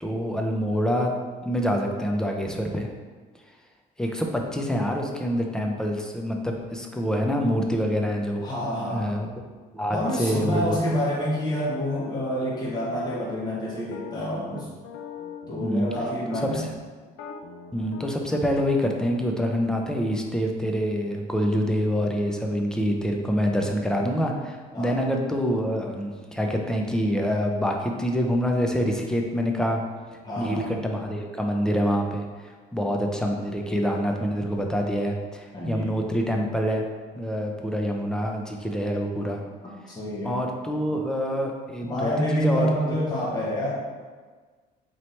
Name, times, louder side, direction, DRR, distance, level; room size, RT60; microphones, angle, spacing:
voice 1, 0.0-1.1 1.4-2.9 4.0-8.4 8.9-9.3 9.7-10.8 15.6-15.9 16.3-16.7 17.7-29.8 30.4-36.8 37.1-39.4 40.2-43.0, equal, 5° left, 1 dB, 0.5 m, -26 dB
voice 2, 8.4-9.1 9.9-14.7 15.5-16.6 24.7-25.0 30.2-30.7 35.5-35.9 39.2-39.3 39.9-40.4 41.8-43.8, equal, 25° left, -6 dB, 1.0 m, -28 dB
sound 1, 10.0-16.6 17.1-18.9, left 6 dB, 75° left, 0.4 m, -42 dB
4.1 x 3.0 x 3.1 m, 1.4 s
cardioid pair, 110°, 17 cm